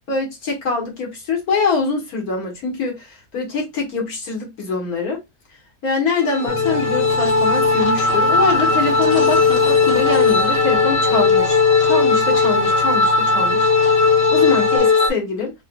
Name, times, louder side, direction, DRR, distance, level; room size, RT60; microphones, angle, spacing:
voice 1, 0.1-5.2 5.8-14.0 14.3-15.5, left 4 dB, 70° left, 1.7 m, -24 dB
sound 1, 6.2-15.1, left 4 dB, 45° left, 1.2 m, -17 dB
sound 2, 6.5-14.8, left 5 dB, 35° right, 1.0 m, -33 dB
4.9 x 2.5 x 2.2 m
omnidirectional pair, 1.7 m